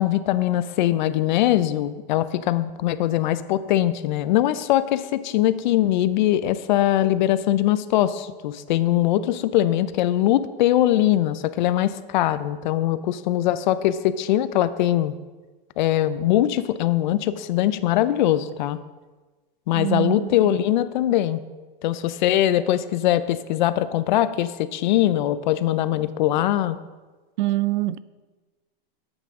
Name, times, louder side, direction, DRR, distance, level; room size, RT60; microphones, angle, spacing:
voice 1, 0.0-15.1 15.8-18.8 19.7-21.4 21.8-26.8, left 13 dB, 55° left, 0.5 m, -21 dB
voice 2, 19.7-20.3 27.4-28.0, right 15 dB, 55° right, 0.4 m, -24 dB
11.0 x 8.1 x 3.6 m
supercardioid pair, 160°, 29 cm